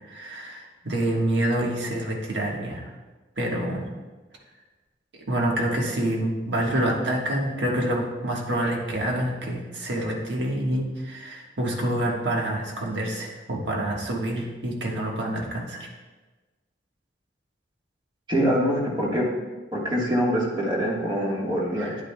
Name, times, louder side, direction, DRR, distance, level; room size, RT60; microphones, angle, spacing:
voice 1, 0.1-2.9 3.4-3.9 5.2-15.9 21.8-22.0, right 1 dB, 75° right, -1 dB, 1.4 m, -27 dB
voice 2, 18.3-19.3 19.7-21.9, equal, 25° right, -3 dB, 1.4 m, -24 dB
9.9 x 8.8 x 2.2 m, 1.2 s
head